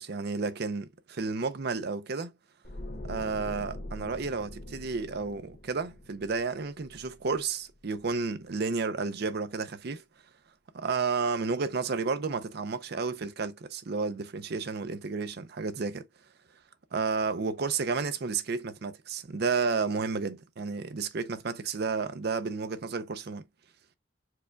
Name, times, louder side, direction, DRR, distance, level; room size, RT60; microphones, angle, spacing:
voice 1, 0.0-2.3 3.1-10.0 10.7-16.1 16.9-23.4, right 4 dB, 60° right, 0.6 m, -31 dB
sound 1, 2.6-7.7 8.0-8.3, left 1 dB, 50° left, 1.1 m, -43 dB
4.7 x 2.3 x 4.5 m
head